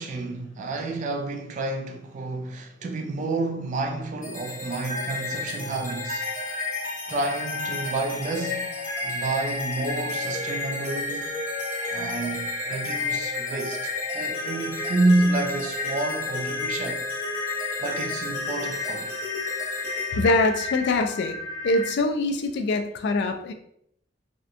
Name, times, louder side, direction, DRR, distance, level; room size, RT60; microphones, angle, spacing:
voice 1, 0.0-6.3 7.1-11.4 11.9-17.0 17.8-19.1, right 2 dB, 40° right, 0.3 m, -29 dB
sound 1, 4.2-21.9, left 3 dB, 45° left, 0.7 m, -31 dB
voice 2, 20.1-21.4 21.6-23.5, left 2 dB, 60° left, 0.3 m, -23 dB
2.8 x 2.1 x 2.4 m
head